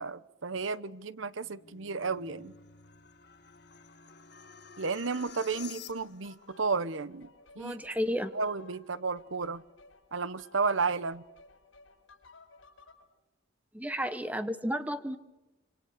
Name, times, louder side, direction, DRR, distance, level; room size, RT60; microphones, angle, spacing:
voice 1, 0.0-2.5 4.8-7.3 7.6-7.8 8.3-9.6 10.1-11.2, right 4 dB, 75° right, 1.0 m, -32 dB
sound 1, 1.4-6.4, left 7 dB, 55° left, 1.8 m, -51 dB
sound 2, 5.3-13.0, left 3 dB, 80° left, 5.7 m, -57 dB
voice 2, 7.6-8.3 13.7-15.2, equal, 10° right, 1.3 m, -32 dB
27.0 x 25.5 x 6.7 m
head